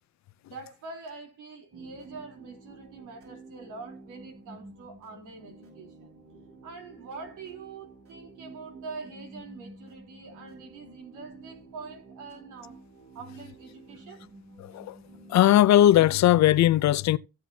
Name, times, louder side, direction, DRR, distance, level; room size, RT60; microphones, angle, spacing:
voice 1, 0.5-6.1 6.6-12.8 13.1-14.3, right 4 dB, 90° right, 3.7 m, -44 dB
sound 1, 1.7-16.6, right 3 dB, 50° right, 6.0 m, -50 dB
voice 2, 14.6-15.0 15.3-17.2, left 13 dB, 65° left, 0.6 m, -19 dB
16.0 x 7.8 x 2.8 m
cardioid pair, 90°, 30 cm